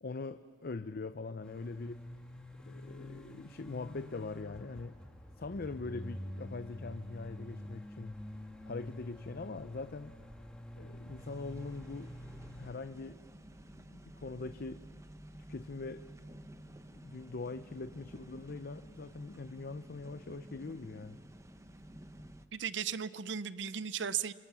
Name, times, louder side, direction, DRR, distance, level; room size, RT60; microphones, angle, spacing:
voice 1, 0.0-2.0 2.7-5.0 5.4-8.2 8.6-10.2 10.7-12.1 12.6-13.2 13.8-14.8 15.5-16.1 16.9-21.2, left 3 dB, 55° left, 11 dB, 0.6 m, -42 dB
sound 1, 1.4-12.7, left 1 dB, 5° left, 2.2 m, -47 dB
sound 2, 11.2-22.5, right 1 dB, 15° right, 0.9 m, -52 dB
voice 2, 22.5-24.3, right 8 dB, 70° right, 15 dB, 0.6 m, -36 dB
28.0 x 27.0 x 6.1 m, 2.1 s
head